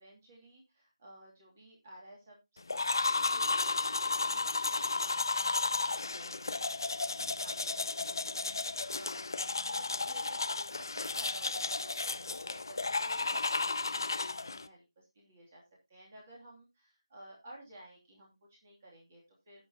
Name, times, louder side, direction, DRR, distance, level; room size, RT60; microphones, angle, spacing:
voice 1, 0.0-4.4 4.7-7.1 7.4-9.2 9.6-15.6 15.9-19.6, right 1 dB, 20° right, -3 dB, 2.8 m, -55 dB
sound 1, 2.7-14.7, left 3 dB, 40° left, 0.7 m, -33 dB
18.0 x 6.1 x 2.9 m, 0.24 s
figure-of-eight pair, 175°, 3 cm